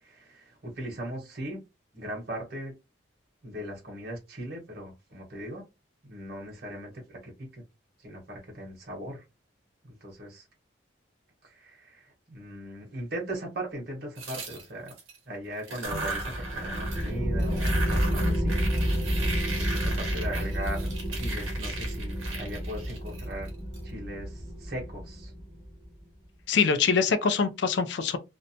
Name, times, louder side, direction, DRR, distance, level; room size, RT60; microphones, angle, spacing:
voice 1, 0.0-1.6 1.9-2.7 3.4-5.6 6.0-7.6 8.0-9.2 9.8-10.4 11.4-14.9 15.3-17.8 18.1-18.6 19.4-23.5 23.8-25.3, right 1 dB, 50° right, 1.1 m, -39 dB
sound 1, 14.2-15.2 15.6-17.1 17.4-23.8, right 3 dB, 85° right, 1.0 m, -37 dB
sound 2, 15.8-25.9, equal, 10° left, 0.9 m, -30 dB
voice 2, 26.5-28.2, left 5 dB, 65° left, 0.4 m, -24 dB
2.6 x 2.1 x 2.7 m
head